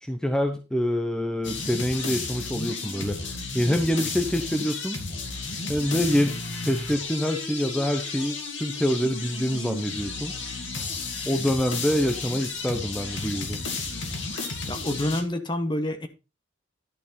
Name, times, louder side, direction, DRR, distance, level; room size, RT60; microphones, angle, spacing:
voice 1, 0.0-5.0 5.7-6.4 6.6-10.3 11.2-13.6, equal, 5° left, 0.8 m, -26 dB
sound 1, 1.4-15.2, left 3 dB, 80° left, 2.3 m, -33 dB
voice 2, 14.7-16.1, left 1 dB, 25° left, 1.1 m, -27 dB
11.0 x 6.1 x 4.2 m
head